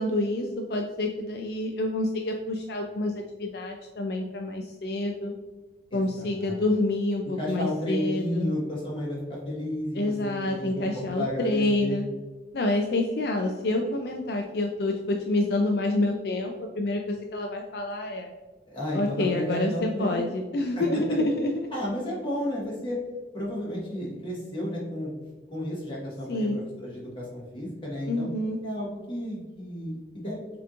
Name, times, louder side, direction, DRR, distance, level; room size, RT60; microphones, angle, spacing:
voice 1, 0.0-5.3 5.9-8.5 9.9-12.0 12.5-18.3 18.9-21.7 26.3-26.6 28.1-28.6, left 2 dB, 65° left, 3 dB, 0.4 m, -28 dB
voice 2, 5.9-6.7 7.4-12.1 18.7-20.2 20.8-21.2 21.7-23.0 23.3-25.1 25.5-28.3 28.6-30.4, equal, 30° left, -5 dB, 1.4 m, -32 dB
6.8 x 2.9 x 2.5 m, 1.2 s
head